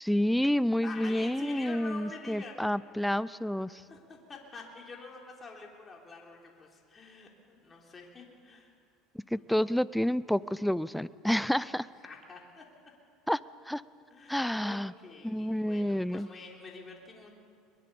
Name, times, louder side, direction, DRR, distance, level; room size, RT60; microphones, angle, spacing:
voice 1, 0.0-3.8 9.3-11.9 13.3-13.4 13.7-13.8 14.3-14.9 15.2-16.3, equal, ahead, 17 dB, 0.5 m, -29 dB
voice 2, 0.8-2.6 3.9-8.8 9.3-9.7 12.0-12.7 14.1-17.3, left 4 dB, 25° left, -1 dB, 3.5 m, -47 dB
22.0 x 21.5 x 7.0 m, 2.3 s
supercardioid pair, 110°, 0 cm